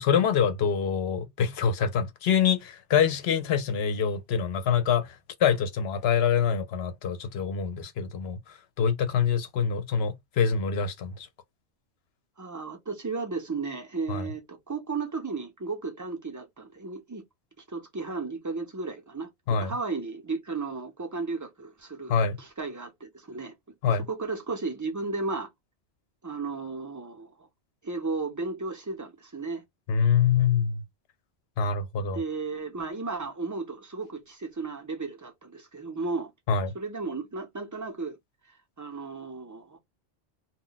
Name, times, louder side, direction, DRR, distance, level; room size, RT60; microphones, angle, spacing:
voice 1, 0.0-5.1 5.4-8.4 8.8-11.3 14.1-14.2 19.5-19.7 22.1-22.4 23.8-24.1 29.9-30.8 31.6-32.2 36.5-36.7, left 7 dB, 70° left, 0.8 m, -25 dB
voice 2, 12.4-17.2 17.7-23.5 23.9-25.5 26.2-27.5 27.8-29.6 32.1-36.3 36.7-38.2 38.5-39.8, right 3 dB, 20° right, 0.6 m, -34 dB
2.3 x 2.1 x 3.8 m
omnidirectional pair, 1.1 m